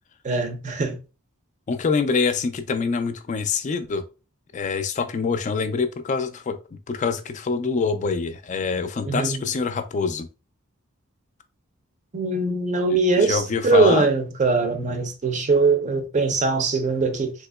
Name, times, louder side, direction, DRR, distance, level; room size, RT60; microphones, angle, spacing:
voice 1, 0.2-1.0 9.1-9.4 12.1-17.3, right 3 dB, 35° right, 0.5 m, -21 dB
voice 2, 1.7-4.0 4.5-10.3 12.9-14.1, left 5 dB, 35° left, 0.3 m, -25 dB
3.6 x 2.9 x 2.2 m
head